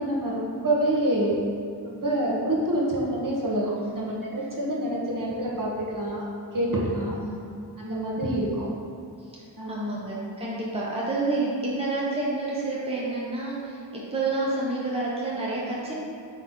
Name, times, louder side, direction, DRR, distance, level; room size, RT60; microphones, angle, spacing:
voice 1, 0.0-1.3 1.8-6.2 6.5-7.1 7.8-8.7 9.6-10.0, right 1 dB, 40° right, -5 dB, 1.4 m, -27 dB
voice 2, 7.0-7.4 9.2-15.9, right 2 dB, 10° right, -6 dB, 1.0 m, -29 dB
7.6 x 3.3 x 4.4 m, 2.5 s
wide cardioid pair, 85°, 47 cm